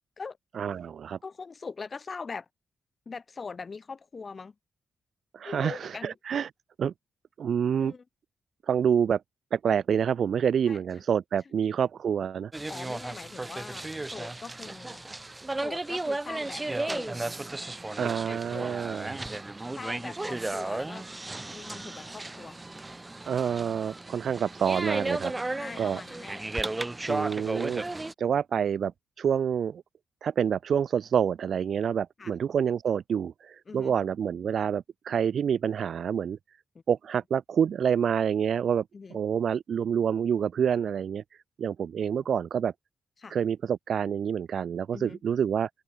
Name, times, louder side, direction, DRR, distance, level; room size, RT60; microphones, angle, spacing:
voice 1, 0.6-1.2 5.3-6.5 6.8-6.9 7.4-7.9 8.7-9.2 9.5-12.5 18.0-19.2 23.2-26.0 27.1-28.9 29.2-29.8 30.2-36.4 36.9-38.8 39.1-41.2 41.6-42.7 43.3-45.7, right 8 dB, 60° right, 1.3 m, -27 dB
voice 2, 1.2-2.5 3.1-4.5 5.4-6.1 7.8-8.0 10.7-10.8 11.4-11.5 12.7-15.1 15.6-17.2 18.0-18.8 19.7-21.1 21.5-22.7 25.6-26.4 32.2-32.3 33.7-34.0 36.7-36.8 38.9-39.2 42.0-42.3 43.2-43.4 44.9-45.2, left 4 dB, 35° left, 7.6 m, -42 dB
sound 1, 12.5-28.1, right 2 dB, 15° right, 2.8 m, -34 dB
cardioid pair, 110°, 0 cm